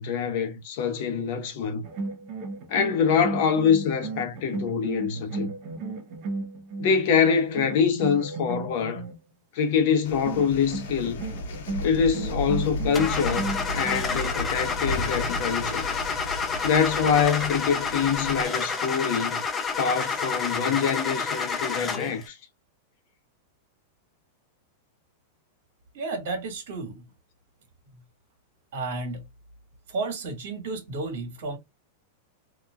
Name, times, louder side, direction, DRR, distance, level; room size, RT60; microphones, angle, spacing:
voice 1, 0.0-1.8 2.7-5.5 6.8-9.0 9.5-11.2 11.8-15.9 16.6-19.4 19.8-22.4, left 6 dB, 50° left, 0.7 m, -25 dB
sound 1, 1.8-7.0 7.6-9.2 10.3-14.1, right 3 dB, 40° right, 0.7 m, -35 dB
sound 2, 10.0-18.5, left 1 dB, 75° left, 0.9 m, -34 dB
Car / Engine starting, 12.9-22.2, left 5 dB, 15° left, 0.4 m, -29 dB
voice 2, 25.9-27.1 27.9-28.0 28.7-29.3 29.9-31.6, right 3 dB, 70° right, 1.6 m, -32 dB
2.9 x 2.3 x 2.2 m
supercardioid pair, 165°, 0 cm